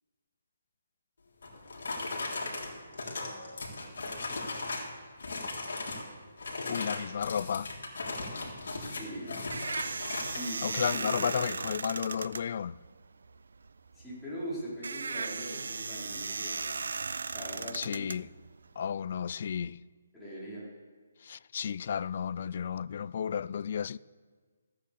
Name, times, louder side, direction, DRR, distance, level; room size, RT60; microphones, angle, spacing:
sound 1, 1.4-4.9 5.2-6.1 6.4-10.5, left 3 dB, 70° left, 3.5 m, -37 dB
voice 1, 6.7-7.7 10.6-12.8 17.7-18.3 18.8-19.8 21.2-24.0, left 8 dB, 45° left, 0.4 m, -33 dB
voice 2, 8.9-9.3 9.8-10.0 10.3-11.5 13.9-16.6 17.3-18.1 20.1-20.6, equal, 5° left, 4.8 m, -41 dB
sound 2, 8.9-18.9, right 4 dB, 75° right, 0.5 m, -37 dB
15.0 x 9.3 x 6.7 m
hypercardioid pair, 165°, 0 cm